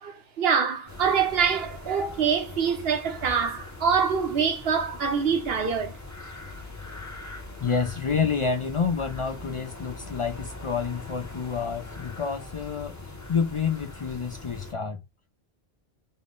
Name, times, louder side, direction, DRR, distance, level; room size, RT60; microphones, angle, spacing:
voice 1, 0.0-6.0, right 6 dB, 75° right, 1.0 m, -25 dB
sound 1, 0.9-14.7, left 3 dB, 20° left, 0.6 m, -42 dB
voice 2, 7.6-13.0 13.3-15.0, left 5 dB, 55° left, 0.3 m, -28 dB
3.7 x 2.0 x 3.6 m
omnidirectional pair, 1.0 m